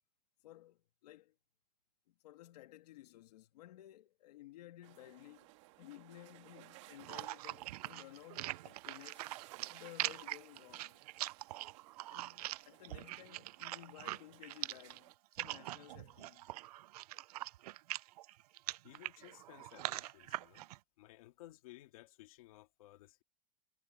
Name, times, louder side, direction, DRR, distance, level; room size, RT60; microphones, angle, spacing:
voice 1, 0.4-1.3 2.2-5.5 5.8-9.3 9.6-11.0 12.1-15.1 15.4-16.5, left 15 dB, 90° left, 1.6 m, -56 dB
sound 1, 4.8-15.1, right 20 dB, 50° right, 2.0 m, -60 dB
sound 2, 7.0-20.8, right 17 dB, 75° right, 0.4 m, -43 dB
voice 2, 18.8-20.7 21.0-23.2, left 16 dB, 60° left, 2.6 m, -57 dB
supercardioid pair, 180°, 20 cm